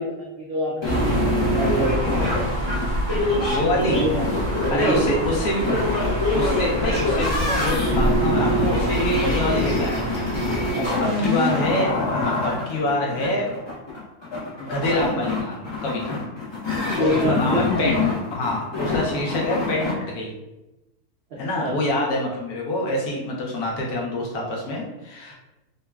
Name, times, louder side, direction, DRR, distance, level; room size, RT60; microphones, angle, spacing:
voice 1, 0.0-2.3 3.8-4.3 4.6-5.2 5.5-5.8 9.1-9.5 10.7-11.2 16.9-17.7 19.2-19.3 21.3-21.8 23.4-23.6, right 1 dB, 75° right, -5 dB, 0.5 m, -28 dB
sound 1, 0.8-19.9, left 1 dB, 35° left, 0.4 m, -25 dB
sound 2, 0.8-10.7, left 1 dB, 35° right, 1.0 m, -27 dB
voice 2, 3.4-4.0 4.7-5.7 6.3-10.2 11.2-13.5 14.6-16.2 17.0-17.9 18.3-20.3 21.4-25.3, left 1 dB, 75° left, -3 dB, 1.2 m, -26 dB
3.8 x 2.2 x 2.3 m, 0.98 s
omnidirectional pair, 1.6 m